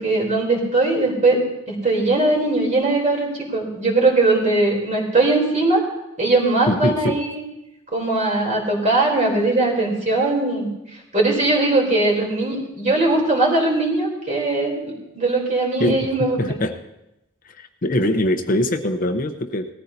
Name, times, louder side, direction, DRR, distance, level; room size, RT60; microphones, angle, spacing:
voice 1, 0.0-5.8 6.2-7.4 7.9-16.6, right 2 dB, 40° right, -1 dB, 3.4 m, -20 dB
voice 2, 6.7-7.2 15.8-16.0 16.4-16.8 17.4-19.7, left 1 dB, 45° left, 7 dB, 0.8 m, -22 dB
19.0 x 14.5 x 2.7 m, 0.91 s
head